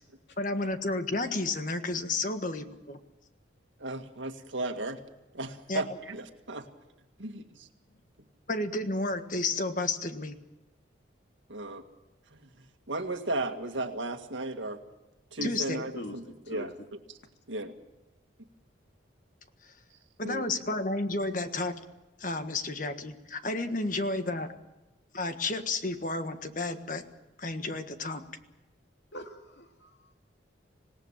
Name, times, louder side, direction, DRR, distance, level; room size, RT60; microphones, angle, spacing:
voice 1, 0.4-3.0 5.7-5.8 8.5-10.4 15.4-15.8 20.2-21.8 22.2-24.5 25.1-27.0 27.4-28.2, left 2 dB, 45° left, 8 dB, 1.6 m, -31 dB
voice 2, 3.8-5.0 5.3-6.7 7.2-7.7 11.5-11.8 12.3-14.8 15.3-16.0 16.5-16.7 17.5-17.8 20.2-20.5, right 2 dB, 80° right, 6 dB, 2.0 m, -35 dB
voice 3, 15.9-16.7 23.9-24.0 29.1-30.1, equal, 65° left, 4 dB, 2.6 m, -43 dB
26.0 x 18.0 x 7.5 m, 1.0 s
head